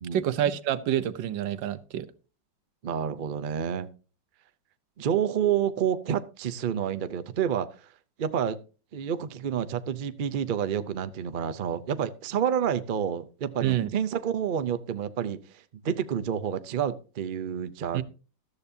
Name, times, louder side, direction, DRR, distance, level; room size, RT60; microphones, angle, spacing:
voice 1, 0.1-2.1 13.6-13.9 17.9-18.0, right 11 dB, 90° right, 1.5 m, -27 dB
voice 2, 2.8-3.9 5.0-7.7 8.2-8.6 8.9-15.4 15.8-18.0, right 8 dB, 70° right, 0.4 m, -29 dB
13.5 x 13.0 x 2.7 m
omnidirectional pair, 2.0 m